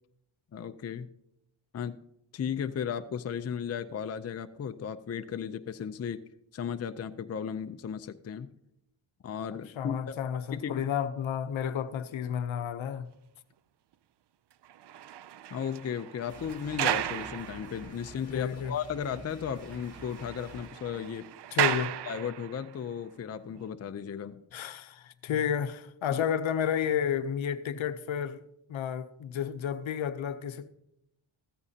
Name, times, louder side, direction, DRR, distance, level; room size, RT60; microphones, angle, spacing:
voice 1, 0.5-1.1 1.7-2.0 2.3-6.2 6.5-8.5 9.2-10.1 10.5-10.8 15.5-21.3 22.0-24.4 26.1-26.2, left 7 dB, 35° left, 0.5 m, -35 dB
voice 2, 9.5-13.1 18.3-18.7 21.5-21.9 24.5-28.4 28.7-30.7, left 8 dB, 70° left, 0.8 m, -31 dB
sound 1, 14.6-18.3 18.7-18.8 19.1-19.2 19.5-22.8 23.4-23.6, right 12 dB, 60° right, 0.5 m, -35 dB
sound 2, 16.3-20.7, equal, 35° right, 5.9 m, -49 dB
14.5 x 14.0 x 2.8 m
cardioid pair, 95°, 48 cm